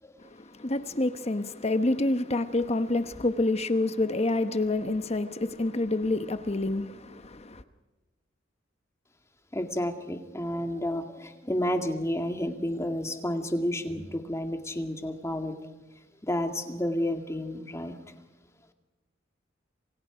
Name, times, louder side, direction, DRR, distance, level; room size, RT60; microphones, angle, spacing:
voice 1, 0.2-7.6, left 2 dB, 35° left, 1.0 m, -28 dB
voice 2, 9.5-15.7 16.2-18.0, left 1 dB, 15° left, 2.1 m, -31 dB
28.0 x 28.0 x 5.1 m
head